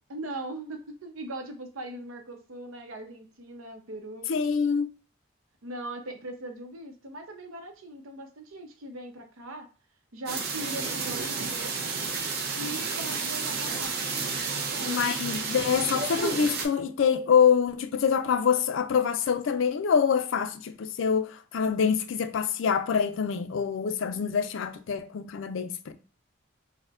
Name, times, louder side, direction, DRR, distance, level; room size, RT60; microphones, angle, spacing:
voice 1, 0.1-4.3 5.6-9.7 10.1-11.9 12.5-13.9 14.5-15.2, right 1 dB, 90° right, 0.7 m, -40 dB
voice 2, 4.3-4.9 14.9-25.9, left 7 dB, 70° left, 0.4 m, -25 dB
sound 1, 10.3-16.7, right 4 dB, 50° right, 0.6 m, -31 dB
4.2 x 2.1 x 2.4 m
head